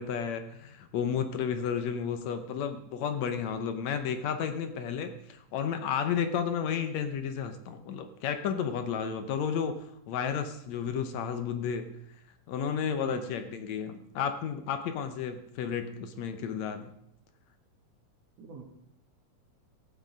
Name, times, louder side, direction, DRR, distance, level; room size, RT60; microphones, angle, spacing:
voice 1, 0.0-11.9 12.5-16.9, left 7 dB, 70° left, 8 dB, 2.0 m, -32 dB
voice 2, 13.0-13.3 18.4-18.6, right 6 dB, 60° right, 4 dB, 2.5 m, -45 dB
14.5 x 8.9 x 5.1 m, 0.73 s
omnidirectional pair, 3.4 m